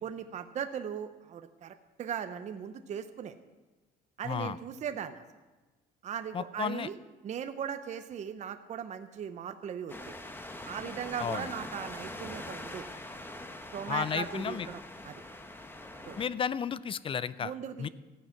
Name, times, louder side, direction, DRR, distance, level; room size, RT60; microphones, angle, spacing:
voice 1, 0.0-3.4 4.2-5.2 6.0-6.9 7.2-10.2 10.6-12.9 13.7-15.2 16.1-16.2 17.4-17.9, right 8 dB, 45° right, 9 dB, 0.7 m, -38 dB
voice 2, 4.2-4.6 6.3-6.9 11.2-11.5 13.9-14.7 16.2-17.5 17.8-17.9, left 7 dB, 30° left, 18 dB, 0.4 m, -33 dB
sound 1, 9.9-16.3, left 1 dB, 10° left, 1.1 m, -43 dB
14.5 x 8.9 x 5.9 m, 1.2 s
cardioid pair, 110°, 17 cm